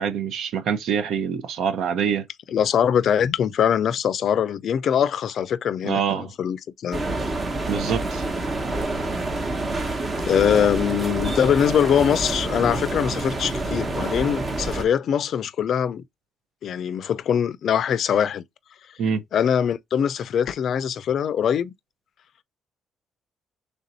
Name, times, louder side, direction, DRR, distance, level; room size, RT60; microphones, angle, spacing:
voice 1, 0.0-2.3 5.8-6.3 7.7-8.2 19.0-19.2, right 7 dB, 75° right, 0.7 m, -25 dB
voice 2, 2.5-7.0 10.3-16.0 16.6-18.4 19.3-21.7, left 8 dB, 65° left, 0.4 m, -22 dB
sound 1, 6.9-14.8, right 2 dB, 35° right, 1.0 m, -27 dB
3.4 x 2.6 x 4.0 m
cardioid pair, 90°, 0 cm